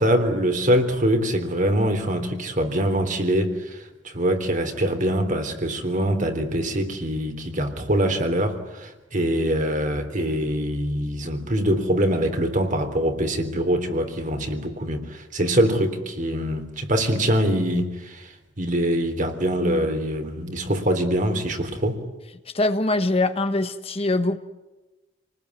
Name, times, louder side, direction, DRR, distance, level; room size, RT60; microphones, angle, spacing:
voice 1, 0.0-3.8 4.0-18.3 18.6-22.0, equal, 45° right, 6 dB, 3.5 m, -24 dB
voice 2, 22.5-24.4, left 2 dB, 35° left, 10 dB, 1.2 m, -22 dB
28.0 x 20.0 x 9.7 m, 1.1 s
head